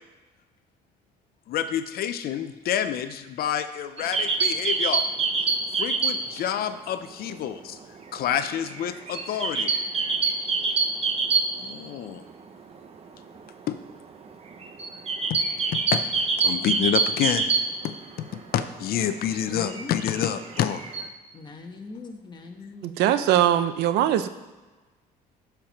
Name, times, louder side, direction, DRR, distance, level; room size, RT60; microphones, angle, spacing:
voice 1, 1.5-5.0 5.7-7.8 8.1-9.8 11.6-12.2 13.7-13.8 15.3-15.4 15.7-16.0 16.4-17.5 17.8-18.3 18.5-20.8, left 10 dB, 65° left, 10 dB, 0.6 m, -28 dB
sound 1, 4.0-6.5 6.7-6.8 7.1-12.0 12.3-12.4 12.6-12.9 13.4-18.4 18.8-21.1, right 4 dB, 35° right, 1.0 m, -26 dB
voice 2, 19.5-20.0 21.3-23.0, left 3 dB, 25° left, 3 dB, 1.4 m, -41 dB
voice 3, 22.8-24.3, right 11 dB, 85° right, 11 dB, 0.6 m, -21 dB
11.5 x 4.6 x 5.8 m, 1.2 s
cardioid pair, 110°, 17 cm